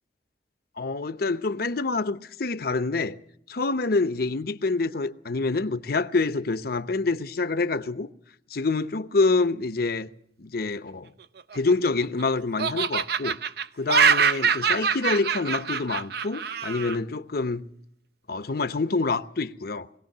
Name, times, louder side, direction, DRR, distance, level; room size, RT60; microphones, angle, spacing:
voice 1, 0.8-3.2 3.5-8.1 8.5-10.1 10.4-11.1 11.5-13.4 13.8-17.6 18.3-19.9, left 3 dB, 60° left, 0.8 m, -26 dB
Laughter, 11.4-12.2 12.6-17.0, right 6 dB, 60° right, 0.7 m, -24 dB
22.5 x 17.5 x 6.6 m
head